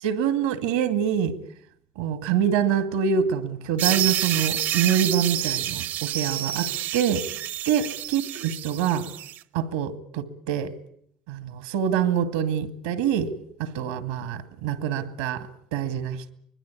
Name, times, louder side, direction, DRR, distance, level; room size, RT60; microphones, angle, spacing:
voice 1, 0.0-1.4 2.0-7.2 7.7-7.8 8.1-9.1 9.5-10.7 11.3-13.3 13.6-16.3, right 8 dB, 85° right, 11 dB, 2.1 m, -25 dB
sound 1, 3.8-9.4, right 12 dB, 65° right, 0.9 m, -28 dB
24.5 x 20.5 x 8.5 m, 0.67 s
supercardioid pair, 85°, 4 cm